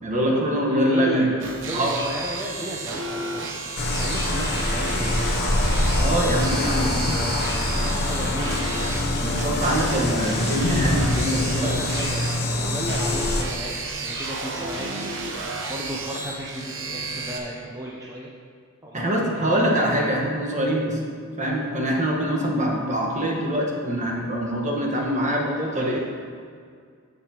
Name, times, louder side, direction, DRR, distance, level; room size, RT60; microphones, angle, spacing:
voice 1, 0.0-1.3 1.7-2.0 5.9-6.9 7.8-7.9 9.2-11.8 18.9-21.0 21.4-25.5 25.7-26.0, equal, 35° right, -1 dB, 1.4 m, -24 dB
voice 2, 0.6-6.0 6.4-9.5 11.4-18.3 18.8-19.7 25.4-26.0, right 1 dB, 15° right, -4 dB, 0.7 m, -35 dB
sound 1, 1.4-17.4, right 3 dB, 60° right, 0.9 m, -32 dB
sound 2, 3.8-13.4, left 1 dB, 45° left, 0.8 m, -24 dB
12.5 x 6.9 x 3.0 m, 2.1 s
head